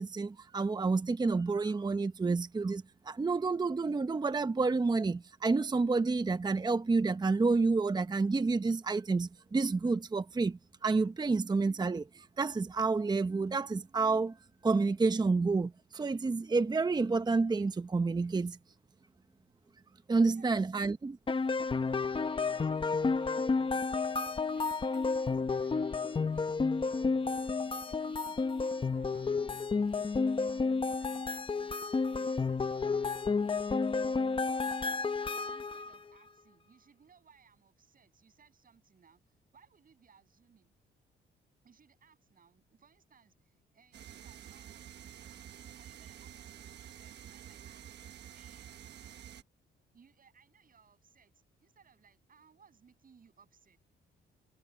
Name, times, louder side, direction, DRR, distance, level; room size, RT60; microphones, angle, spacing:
voice 1, 0.0-14.3 14.6-18.6 20.1-21.2, right 4 dB, 20° right, 0.8 m, -29 dB
voice 2, 20.2-20.6 21.4-31.7 32.1-33.8 34.5-40.7 41.6-45.0 45.8-47.9 48.3-48.8 49.9-53.8, right 6 dB, 45° right, 7.8 m, -63 dB
sound 1, 21.3-36.0, left 4 dB, 25° left, 1.0 m, -31 dB
sound 2, 43.9-49.4, right 10 dB, 60° right, 1.3 m, -49 dB
cardioid pair, 90°, 20 cm